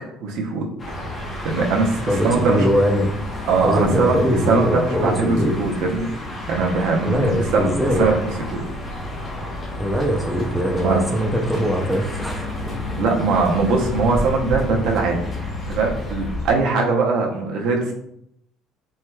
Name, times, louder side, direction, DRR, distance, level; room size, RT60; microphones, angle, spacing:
voice 1, 0.2-0.7 1.1-2.7 3.4-4.2 4.5-8.6 10.8-11.0 13.0-15.2 15.7-17.9, right 4 dB, 70° right, 0 dB, 0.6 m, -21 dB
sound 1, 0.8-16.5, left 1 dB, 20° left, 0.8 m, -30 dB
voice 2, 2.1-3.1 3.6-5.6 7.0-8.2 9.8-12.8, equal, ahead, 0 dB, 0.4 m, -21 dB
4.4 x 2.2 x 2.2 m, 0.74 s
cardioid pair, 155°, 0 cm